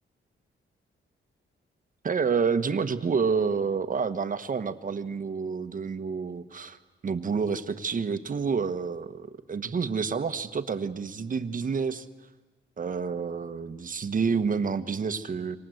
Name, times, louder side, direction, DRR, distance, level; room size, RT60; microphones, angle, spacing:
voice 1, 2.0-6.8 7.0-12.1 12.8-15.6, right 5 dB, 40° right, 10 dB, 1.3 m, -29 dB
28.5 x 25.5 x 8.0 m, 1.4 s
cardioid pair, 110°, 21 cm